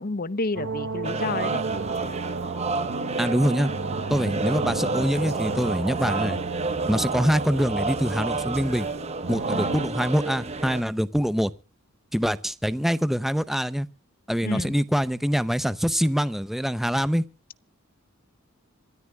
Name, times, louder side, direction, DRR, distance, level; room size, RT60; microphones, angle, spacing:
voice 1, 0.0-1.6 9.5-9.9 14.4-14.8, left 3 dB, 40° left, 0.7 m, -30 dB
sound 1, 0.6-9.9, right 3 dB, 55° right, 1.1 m, -33 dB
sound 2, 1.0-10.8, right 3 dB, 30° right, 1.2 m, -30 dB
voice 2, 3.2-3.7 4.1-6.4 6.9-8.9 9.3-11.5 12.1-13.9 14.3-17.2, equal, ahead, 0.6 m, -24 dB
26.5 x 13.0 x 2.3 m
head